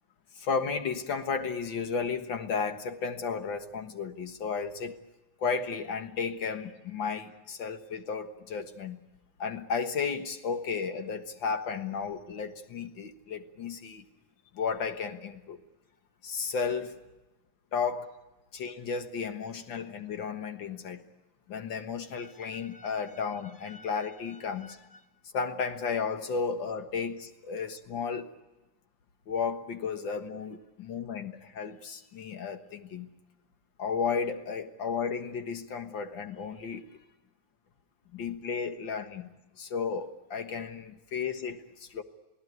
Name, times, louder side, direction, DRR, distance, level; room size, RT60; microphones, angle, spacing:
voice 1, 0.4-5.0 5.4-9.0 9.4-14.0 14.5-15.6 16.2-17.0 17.7-18.1 18.5-21.0 21.5-25.0 25.3-28.3 29.3-33.1 33.8-36.9 38.1-39.3 39.6-42.0, left 5 dB, 90° left, 7 dB, 2.2 m, -33 dB
29.0 x 17.5 x 9.6 m, 1.1 s
omnidirectional pair, 2.0 m